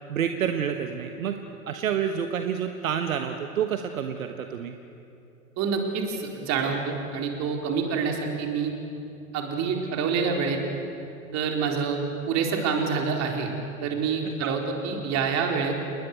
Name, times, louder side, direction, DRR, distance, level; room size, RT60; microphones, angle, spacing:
voice 1, 0.1-1.4 1.7-4.7 14.4-14.6, right 8 dB, 65° right, 7 dB, 1.4 m, -28 dB
voice 2, 5.6-8.7 9.3-10.6 11.3-12.0 12.3-13.5 13.8-15.7, right 5 dB, 35° right, 2 dB, 4.3 m, -27 dB
28.5 x 20.5 x 8.0 m, 2.8 s
figure-of-eight pair, 90°, 43 cm